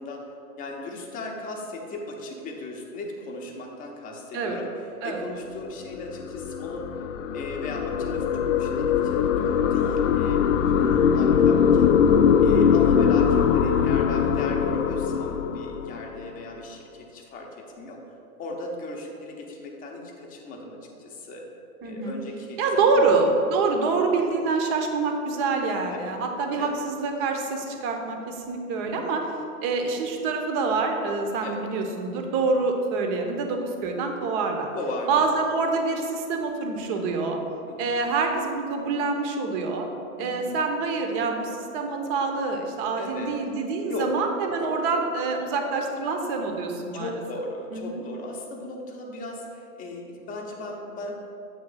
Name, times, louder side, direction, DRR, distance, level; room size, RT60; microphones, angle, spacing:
voice 1, 0.0-4.7 5.0-6.9 7.3-11.9 12.4-18.0 18.4-21.5 21.8-23.1 25.9-26.2 26.6-26.8 28.9-29.1 31.4-31.6 34.7-35.3 37.7-37.9 40.2-40.5 42.9-43.4 43.9-44.1 44.6-45.1 46.9-51.1, left 2 dB, 20° left, 0 dB, 0.8 m, -37 dB
sound 1, 5.7-16.3, left 7 dB, 55° left, 0.5 m, -21 dB
voice 2, 10.6-11.5 21.8-22.2 22.6-29.2 29.6-34.7 35.1-37.4 37.8-39.9 40.2-47.1 47.7-48.0, right 4 dB, 30° right, 3 dB, 0.8 m, -26 dB
8.1 x 3.2 x 5.5 m, 2.8 s
hypercardioid pair, 120°, 44 cm